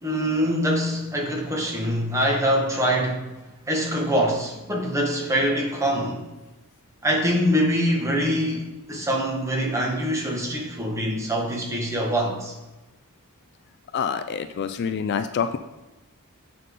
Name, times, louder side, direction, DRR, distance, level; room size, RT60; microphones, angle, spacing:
voice 1, 0.0-3.3 3.7-6.2 7.0-12.5, equal, 15° right, 1.4 m, -24 dB
voice 2, 13.9-15.6, left 6 dB, 50° left, 0.4 m, -26 dB
7.7 x 5.7 x 3.8 m
head